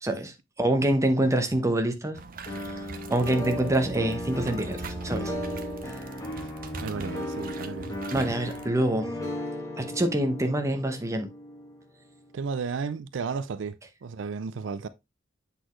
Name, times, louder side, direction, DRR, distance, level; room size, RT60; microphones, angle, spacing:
voice 1, 0.0-2.2 2.7-2.8 3.1-5.3 8.1-9.2 9.8-11.3, right 1 dB, 15° right, 0.9 m, -26 dB
sound 1, 2.1-8.7, right 3 dB, 50° right, 0.8 m, -40 dB
sound 2, 2.5-12.4, left 1 dB, 15° left, 1.7 m, -36 dB
voice 2, 6.8-8.0 12.3-14.9, right 5 dB, 80° right, 0.4 m, -33 dB
7.8 x 4.2 x 3.1 m
head